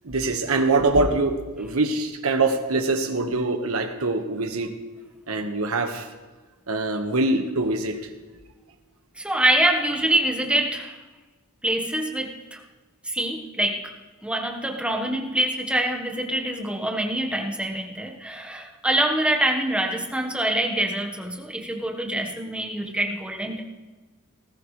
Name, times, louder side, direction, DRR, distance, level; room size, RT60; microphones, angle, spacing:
voice 1, 0.0-4.7 5.3-6.1 6.7-8.0, right 2 dB, 80° right, 6 dB, 1.5 m, -24 dB
voice 2, 9.2-11.0 11.6-12.6 13.0-13.9 14.2-23.6, right 1 dB, 5° right, 2 dB, 1.4 m, -25 dB
19.5 x 14.0 x 3.3 m, 1.3 s
head